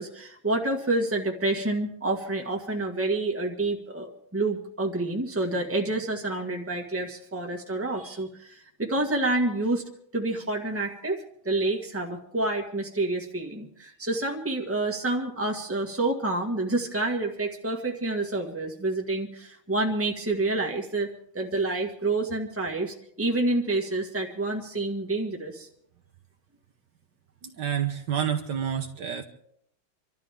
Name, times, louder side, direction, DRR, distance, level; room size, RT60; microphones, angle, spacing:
voice 1, 0.0-9.8 10.1-25.7, right 2 dB, 5° right, 1 dB, 1.6 m, -28 dB
voice 2, 27.4-29.2, right 8 dB, 60° right, 3 dB, 1.6 m, -29 dB
26.5 x 13.0 x 3.7 m, 0.69 s
omnidirectional pair, 2.3 m